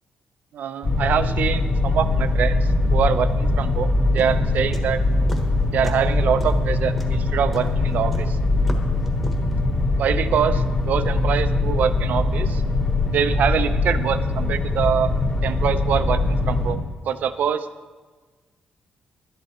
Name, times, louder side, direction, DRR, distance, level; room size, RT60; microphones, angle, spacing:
voice 1, 0.5-5.0 5.7-8.4 10.0-12.6 13.1-15.1 15.4-17.7, right 8 dB, 65° right, 12 dB, 0.6 m, -24 dB
sound 1, 0.8-16.7, left 2 dB, 35° left, 1.8 m, -22 dB
sound 2, 4.2-5.5 5.8-6.1 6.4-9.5, equal, 5° left, 1.2 m, -38 dB
12.0 x 11.0 x 4.3 m, 1.4 s
cardioid pair, 155°, 3 cm